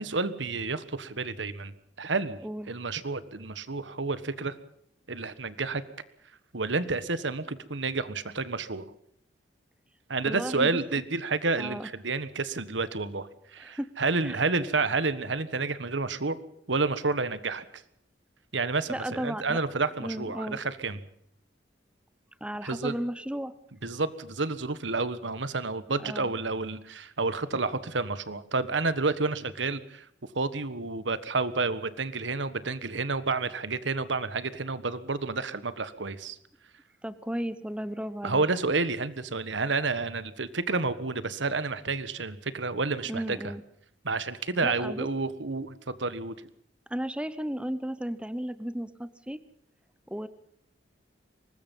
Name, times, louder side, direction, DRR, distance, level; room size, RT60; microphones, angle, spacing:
voice 1, 0.0-2.4 2.7-4.5 5.1-5.8 6.5-8.9 10.1-16.4 16.7-17.6 18.5-21.0 22.6-23.0 23.8-30.0 30.3-36.4 38.2-43.5 44.0-46.3, right 3 dB, 85° right, 14 dB, 1.4 m, -30 dB
voice 2, 10.3-10.8 11.6-11.9 13.6-13.9 14.2-14.4 18.9-19.6 20.0-20.6 22.4-23.6 26.0-26.3 37.0-38.4 43.1-43.6 44.6-45.1 46.9-49.4 50.1-50.3, equal, 5° right, 14 dB, 0.8 m, -34 dB
24.0 x 20.0 x 5.5 m, 0.71 s
head